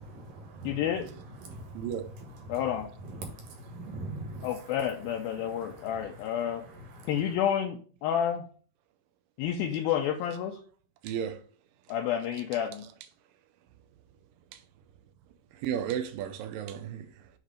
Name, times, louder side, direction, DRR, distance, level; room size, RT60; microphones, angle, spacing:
voice 1, 0.1-0.9 1.4-1.9 2.5-2.6 3.0-4.8 5.4-7.1, right 2 dB, 60° right, 3.0 m, -43 dB
voice 2, 0.6-1.1 2.5-2.9 4.4-6.7 7.1-8.4 9.4-10.6 11.9-12.8, left 9 dB, 80° left, 2.3 m, -30 dB
voice 3, 1.7-2.1 11.0-11.4 14.5-14.6 15.5-17.3, right 9 dB, 80° right, 2.1 m, -34 dB
8.2 x 3.2 x 5.0 m
omnidirectional pair, 4.5 m